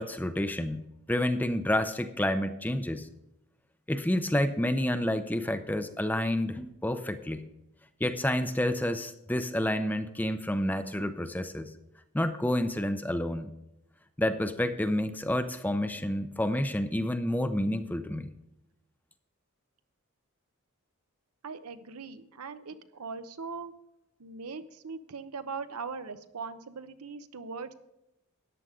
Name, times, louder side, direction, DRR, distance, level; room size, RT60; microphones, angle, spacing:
voice 1, 0.0-3.1 3.9-7.5 8.0-11.7 12.1-13.5 14.2-18.3, left 1 dB, 10° left, 10 dB, 0.5 m, -29 dB
voice 2, 21.4-23.7 24.2-27.7, right 4 dB, 90° right, 11 dB, 0.8 m, -40 dB
13.5 x 9.7 x 3.7 m, 0.91 s
head